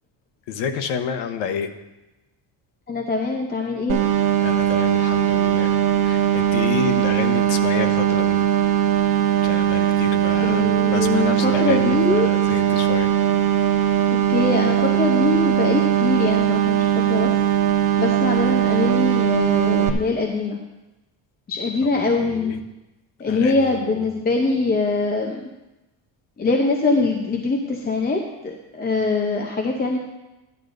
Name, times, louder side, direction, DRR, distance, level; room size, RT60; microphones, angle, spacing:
voice 1, 0.5-1.7 4.4-5.8 6.0-8.4 9.4-13.1 22.2-22.6 23.3-24.0, left 7 dB, 80° left, 8 dB, 1.0 m, -29 dB
voice 2, 2.9-4.0 10.4-12.3 14.3-17.3 18.0-20.6 21.5-22.5 23.2-25.4 26.4-30.0, left 3 dB, 20° left, 1 dB, 0.7 m, -23 dB
sound 1, 3.9-19.9, right 10 dB, 50° right, 0.9 m, -19 dB
13.5 x 10.5 x 2.6 m, 1.0 s
cardioid pair, 145°, 43 cm